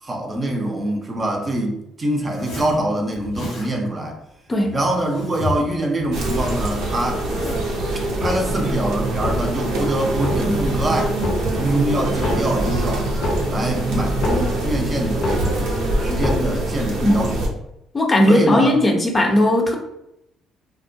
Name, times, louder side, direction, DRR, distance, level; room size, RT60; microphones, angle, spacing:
voice 1, 0.0-4.2 4.7-7.3 8.2-11.2 11.5-15.7 16.0-17.5 18.3-18.8, right 1 dB, 35° right, 1 dB, 0.6 m, -24 dB
Zipper (clothing), 2.2-2.8 3.1-3.7 4.5-5.7 6.0-7.7, left 2 dB, 90° left, 1.0 m, -33 dB
sound 1, 6.1-17.5, right 2 dB, 75° right, 0.6 m, -24 dB
sound 2, 8.1-8.8 9.1-9.7 10.1-10.8 11.1-11.8 12.1-14.8 15.1-15.8 16.1-16.8 17.1-17.2, left 2 dB, 65° left, 0.7 m, -27 dB
voice 2, 17.9-19.8, left 1 dB, 30° left, 1 dB, 0.5 m, -17 dB
2.4 x 2.1 x 2.5 m, 0.84 s
hypercardioid pair, 60°, 0 cm